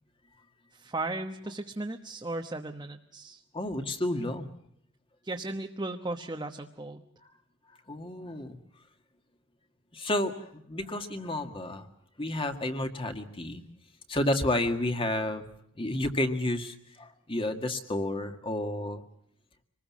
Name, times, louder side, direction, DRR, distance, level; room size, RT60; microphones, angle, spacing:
voice 1, 0.7-3.4 5.2-7.0, right 2 dB, 20° right, 3 dB, 1.1 m, -36 dB
voice 2, 3.5-4.5 7.9-8.6 9.9-11.9 12.2-13.6 14.1-15.4 15.8-19.0, left 1 dB, 25° left, 6 dB, 1.9 m, -31 dB
25.5 x 20.5 x 7.4 m, 0.68 s
head